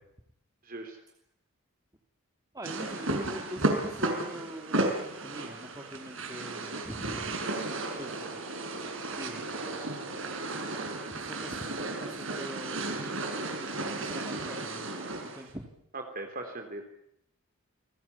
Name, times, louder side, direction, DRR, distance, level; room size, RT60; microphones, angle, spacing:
voice 1, 0.6-1.0 7.7-7.8 15.9-16.9, right 2 dB, 40° right, 4 dB, 3.6 m, -39 dB
voice 2, 2.5-7.4 8.0-9.8 11.1-13.3 13.5-14.9 15.3-15.6, right 1 dB, 15° right, 2 dB, 2.7 m, -43 dB
sound 1, 2.6-15.5, right 2 dB, 60° right, 6.1 m, -34 dB
29.5 x 21.0 x 8.6 m, 0.76 s
head